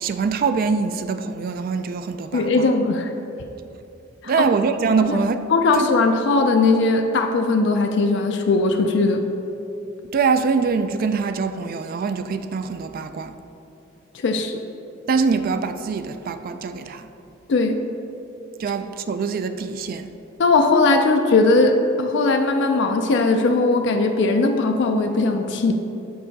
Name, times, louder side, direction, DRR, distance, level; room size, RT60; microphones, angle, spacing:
voice 1, 0.0-2.7 4.3-5.4 5.7-5.9 10.1-13.4 15.1-17.1 18.6-20.1, right 5 dB, 45° right, 9 dB, 0.3 m, -23 dB
voice 2, 2.3-3.2 4.4-4.5 5.1-5.2 5.5-9.2 14.2-14.5 17.5-17.8 20.4-25.7, left 3 dB, 60° left, 4 dB, 0.4 m, -19 dB
7.8 x 4.6 x 4.0 m, 2.9 s
head